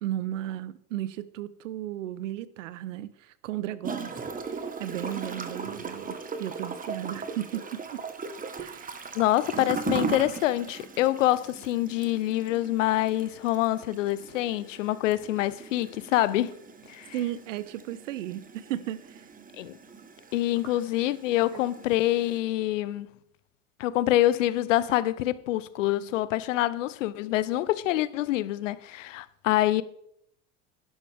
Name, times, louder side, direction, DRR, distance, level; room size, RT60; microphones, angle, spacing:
voice 1, 0.0-4.2 4.5-8.0 8.6-9.0 17.1-19.3 21.5-21.6, right 13 dB, 90° right, 0.7 m, -35 dB
Gurgling / Toilet flush, 3.8-22.4, right 5 dB, 20° right, 1.3 m, -39 dB
voice 2, 9.1-16.6 16.9-17.1 19.6-19.7 20.3-23.1 23.8-29.8, left 15 dB, 90° left, 0.7 m, -26 dB
11.0 x 11.0 x 3.5 m
supercardioid pair, 95°, 37 cm